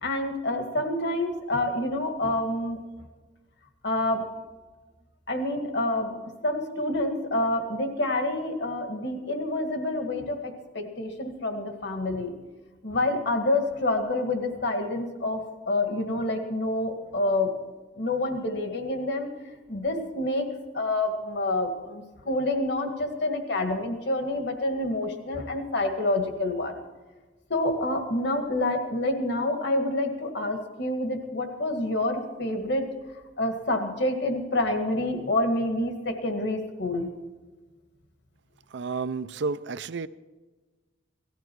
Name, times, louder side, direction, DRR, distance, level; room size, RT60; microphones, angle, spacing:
voice 1, 0.0-2.8 3.8-4.3 5.3-12.4 12.8-17.5 18.0-19.3 19.7-20.5 20.7-26.8 27.5-32.8 33.4-37.1, left 2 dB, 65° left, 5 dB, 1.9 m, -28 dB
voice 2, 38.7-40.1, right 4 dB, 65° right, 14 dB, 0.5 m, -31 dB
17.5 x 13.5 x 4.6 m, 1.3 s
head